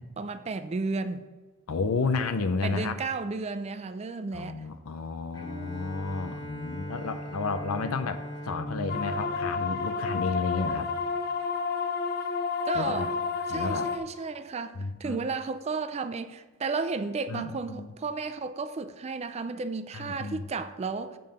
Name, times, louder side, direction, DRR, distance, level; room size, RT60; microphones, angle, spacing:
voice 1, 0.2-1.3 2.6-4.7 12.7-13.2 13.5-21.2, right 4 dB, 30° right, 0.4 m, -33 dB
voice 2, 1.7-3.0 4.3-10.9 12.7-13.1 13.5-13.9 14.8-15.3 17.3-17.9 19.9-20.4, left 4 dB, 75° left, 0.6 m, -32 dB
Bowed string instrument, 5.3-10.6, equal, 20° left, 1.1 m, -40 dB
sound 1, 8.9-14.0, left 5 dB, 50° left, 1.0 m, -30 dB
7.6 x 5.3 x 6.7 m
head